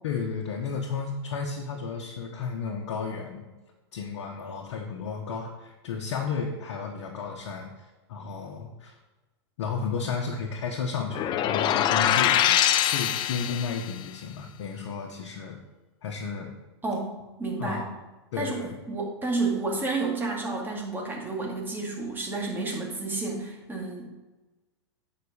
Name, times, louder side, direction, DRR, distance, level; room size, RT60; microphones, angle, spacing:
voice 1, 0.0-3.5 3.9-7.7 8.1-8.9 9.6-12.6 12.9-15.6 16.0-16.5 17.6-17.9 18.3-18.8, left 5 dB, 65° left, 0 dB, 1.2 m, -33 dB
sound 1, 11.1-13.9, left 11 dB, 30° left, 0.5 m, -23 dB
voice 2, 17.4-17.8 18.4-24.1, right 3 dB, 15° right, -1 dB, 2.3 m, -30 dB
9.5 x 5.3 x 5.0 m, 1.2 s
hypercardioid pair, 110°, 15 cm